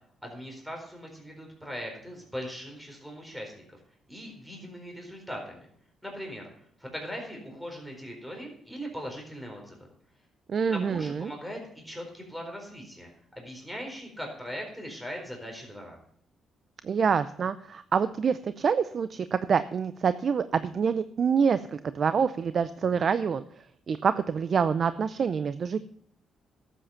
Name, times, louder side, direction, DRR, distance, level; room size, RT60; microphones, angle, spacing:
voice 1, 0.2-3.8 4.1-5.6 6.0-6.5 6.8-9.8 10.7-13.1 13.4-16.0, equal, 5° right, 1 dB, 4.3 m, -40 dB
voice 2, 10.5-11.3 16.8-23.4 23.9-25.8, right 6 dB, 50° right, 13 dB, 0.5 m, -26 dB
12.5 x 8.5 x 5.7 m, 0.66 s
cardioid pair, 90°, 0 cm